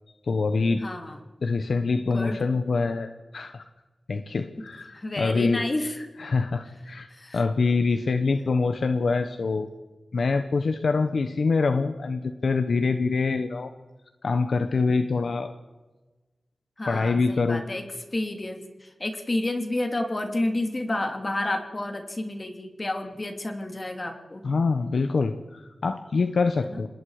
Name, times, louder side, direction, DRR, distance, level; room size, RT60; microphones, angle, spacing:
voice 1, 0.2-0.8 1.4-3.7 4.1-5.6 6.2-7.1 7.3-9.7 10.1-13.7 14.2-15.5 16.9-17.6 24.4-26.9, left 4 dB, 75° left, 8 dB, 1.2 m, -25 dB
voice 2, 0.8-1.2 2.1-2.4 4.9-6.1 7.1-7.4 16.8-17.8 18.1-24.4 26.7-26.8, left 1 dB, 30° left, 4 dB, 3.0 m, -30 dB
27.0 x 20.5 x 5.0 m, 1.2 s
wide cardioid pair, 100°, 0 cm